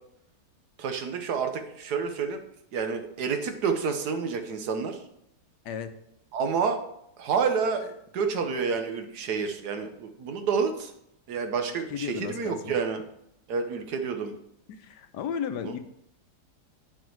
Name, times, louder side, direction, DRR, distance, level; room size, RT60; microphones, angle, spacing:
voice 1, 0.8-2.4 2.7-5.0 6.3-6.8 7.2-10.9 11.3-13.0 13.5-14.3 15.6-15.7, right 5 dB, 75° right, 6 dB, 1.5 m, -29 dB
voice 2, 11.9-12.7 14.7-15.8, left 7 dB, 85° left, 9 dB, 1.3 m, -34 dB
8.1 x 4.7 x 4.6 m, 0.77 s
omnidirectional pair, 1.8 m